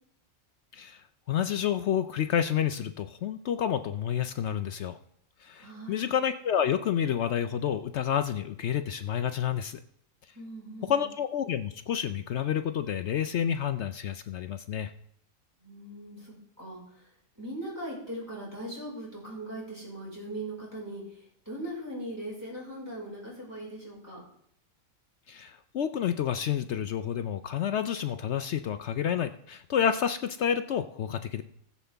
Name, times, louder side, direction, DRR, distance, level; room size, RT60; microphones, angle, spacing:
voice 1, 1.3-5.0 5.4-9.8 10.9-14.9 25.3-31.4, left 9 dB, 65° left, 10 dB, 0.8 m, -29 dB
voice 2, 5.6-6.1 10.3-11.1 15.6-24.2, right 1 dB, 15° right, -6 dB, 4.8 m, -40 dB
18.5 x 7.3 x 3.4 m, 0.69 s
omnidirectional pair, 1.4 m